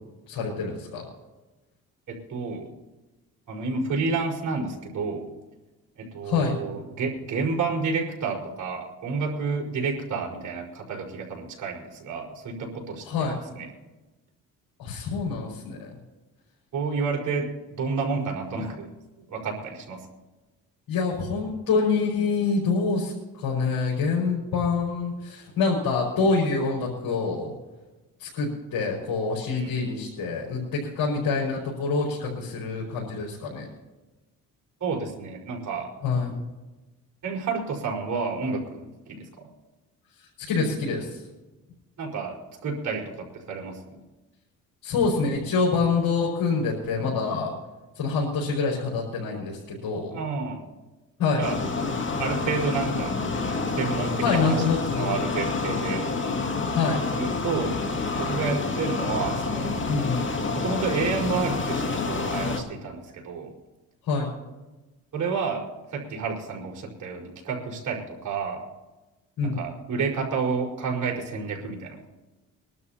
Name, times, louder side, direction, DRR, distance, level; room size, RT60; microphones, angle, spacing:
voice 1, 0.3-1.0 6.2-6.5 13.0-13.3 14.8-16.0 20.9-27.5 28.2-33.7 36.0-36.3 40.2-41.2 44.8-47.5 47.9-50.2 51.2-51.4 54.2-55.1 56.7-57.0 59.9-60.2 64.0-64.3 69.4-69.6, left 4 dB, 70° left, -5 dB, 5.5 m, -26 dB
voice 2, 2.1-2.7 3.5-5.3 6.0-13.1 13.3-13.7 16.7-18.9 19.2-20.0 29.6-29.9 34.8-35.9 37.2-39.5 42.0-44.0 50.1-50.6 51.4-51.6 52.2-53.2 53.7-54.6 55.0-56.1 57.2-60.1 60.5-63.5 65.1-68.6 69.4-72.1, right 4 dB, 60° right, 0 dB, 4.9 m, -30 dB
sound 1, 51.4-62.6, left 4 dB, 35° left, 2.3 m, -28 dB
24.5 x 12.5 x 2.9 m, 1.1 s
supercardioid pair, 65°, 35 cm